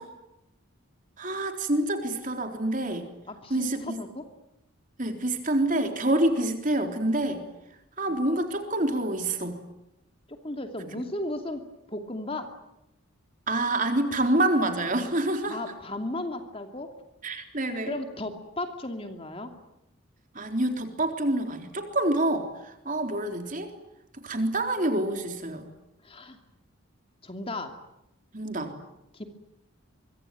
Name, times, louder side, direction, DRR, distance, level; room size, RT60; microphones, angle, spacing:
voice 1, 1.2-3.1 3.5-4.0 5.0-7.4 8.0-9.6 13.5-15.6 17.2-17.9 20.3-23.7 24.2-25.7 28.3-28.7, right 1 dB, 40° right, 5 dB, 3.7 m, -27 dB
voice 2, 3.3-4.3 8.1-8.2 10.3-12.5 15.5-16.9 17.9-19.5 26.0-26.4 27.2-27.8 29.1-29.2, left 1 dB, 25° left, 6 dB, 2.6 m, -35 dB
24.5 x 24.5 x 9.3 m, 0.85 s
head